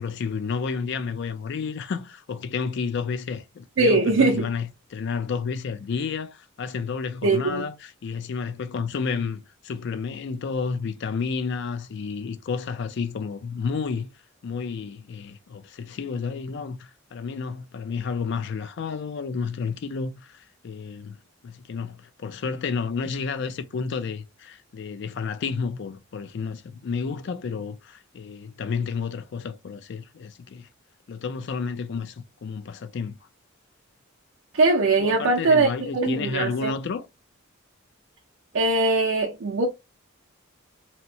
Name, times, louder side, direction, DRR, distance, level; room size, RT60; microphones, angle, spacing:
voice 1, 0.0-14.1 14.4-21.2 21.4-30.7 31.1-33.1 35.0-37.1, left 5 dB, 55° left, 0.3 m, -31 dB
voice 2, 3.8-4.5 7.2-7.6 34.5-36.7 38.5-39.7, right 3 dB, 65° right, 0.5 m, -21 dB
2.8 x 2.1 x 2.6 m
head